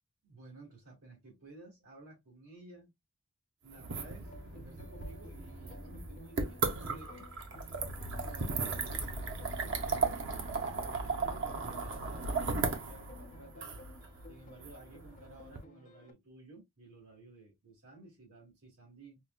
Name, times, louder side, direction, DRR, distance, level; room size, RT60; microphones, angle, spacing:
voice 1, 0.2-2.9 3.6-7.3 8.2-9.3 9.6-10.1 11.0-13.8 14.3-19.2, right 2 dB, 85° right, 1.8 m, -54 dB
sound 1, 3.7-15.6, right 4 dB, 60° right, 0.7 m, -36 dB
sound 2, 4.2-16.1, left 2 dB, 40° left, 0.5 m, -56 dB
4.6 x 2.1 x 2.2 m
head